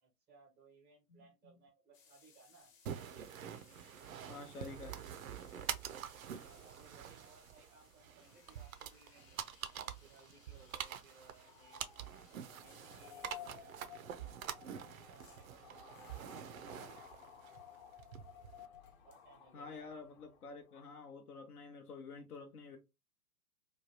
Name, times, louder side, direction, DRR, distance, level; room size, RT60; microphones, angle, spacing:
voice 1, 0.0-2.7 6.3-9.4 9.7-11.8 12.3-13.8 14.8-16.9 19.0-19.9, right 4 dB, 5° right, 0.4 m, -64 dB
voice 2, 1.1-1.6 4.3-5.0 19.5-22.8, left 4 dB, 75° left, 0.8 m, -49 dB
sound 1, 1.9-17.1 17.4-17.9 18.5-19.4, left 6 dB, 55° left, 1.1 m, -67 dB
sound 2, 2.9-18.7, right 9 dB, 65° right, 0.5 m, -47 dB
sound 3, 11.2-21.0, left 9 dB, 35° left, 0.7 m, -56 dB
3.1 x 2.2 x 2.7 m
figure-of-eight pair, 115°, 46 cm